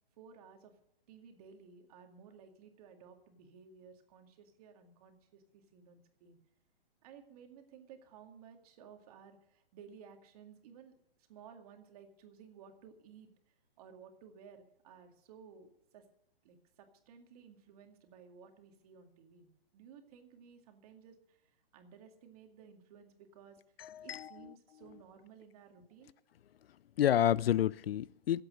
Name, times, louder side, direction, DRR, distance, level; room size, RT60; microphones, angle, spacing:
voice 1, 0.2-0.7 1.1-6.4 7.0-10.9 11.3-13.3 13.8-16.0 16.4-23.6 24.0-26.1, right 6 dB, 40° right, 2.2 m, -56 dB
voice 2, 23.8-24.3 27.0-28.4, left 11 dB, 75° left, 0.5 m, -29 dB
16.0 x 8.3 x 6.4 m
hypercardioid pair, 155°, 30 cm